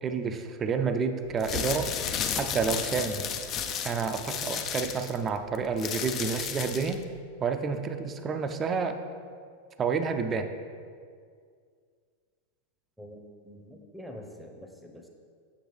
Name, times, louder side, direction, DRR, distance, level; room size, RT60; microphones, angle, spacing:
voice 1, 0.0-1.9 2.2-3.2 3.8-7.0 7.4-9.0 9.8-10.5, right 5 dB, 25° right, 7 dB, 0.5 m, -29 dB
sound 1, 1.3-7.0, left 7 dB, 30° left, 0.5 m, -33 dB
voice 2, 13.0-15.1, equal, ahead, 2 dB, 0.8 m, -46 dB
7.8 x 6.4 x 3.2 m, 2.1 s
figure-of-eight pair, 90°, 0 cm